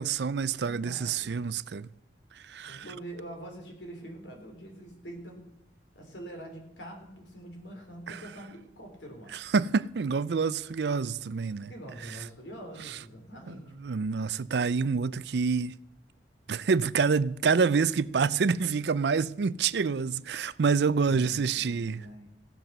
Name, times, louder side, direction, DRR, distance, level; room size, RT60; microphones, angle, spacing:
voice 1, 0.0-1.9 2.5-2.8 8.1-8.2 9.5-11.7 13.5-13.6 13.8-15.7 16.5-22.0, right 5 dB, 65° right, 0.4 m, -27 dB
voice 2, 0.6-1.5 2.7-5.5 6.0-9.3 11.7-13.9 21.1-22.3, right 1 dB, 85° left, 3.6 m, -44 dB
16.5 x 7.6 x 6.6 m
head